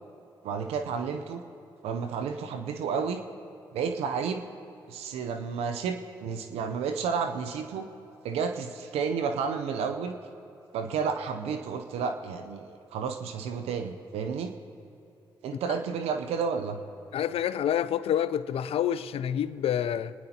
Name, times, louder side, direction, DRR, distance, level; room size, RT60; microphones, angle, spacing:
voice 1, 0.4-1.4 1.8-3.2 3.7-4.5 4.9-7.8 8.2-10.1 10.7-14.5 15.4-16.8, right 6 dB, 85° right, 0.7 m, -31 dB
voice 2, 17.1-20.1, left 10 dB, 70° left, 0.5 m, -28 dB
27.5 x 10.5 x 2.9 m
supercardioid pair, 50°, 10 cm